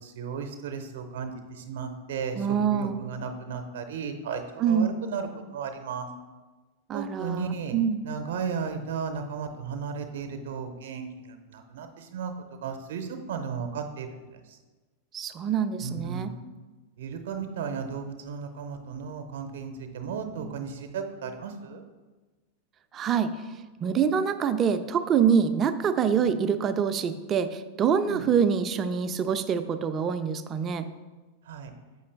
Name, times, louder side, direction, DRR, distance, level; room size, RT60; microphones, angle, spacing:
voice 1, 0.0-6.1 6.9-7.7 8.0-12.3 12.6-14.2 15.8-16.3 17.0-21.8 26.1-26.3 28.0-28.3 31.5-31.7, right 6 dB, 55° right, 7 dB, 0.7 m, -35 dB
voice 2, 2.3-3.0 4.6-5.0 6.9-8.1 15.1-16.3 22.9-23.4 23.8-30.9, right 7 dB, 25° right, 10 dB, 0.4 m, -25 dB
6.8 x 5.5 x 3.2 m, 1.2 s
figure-of-eight pair, 90°, 0 cm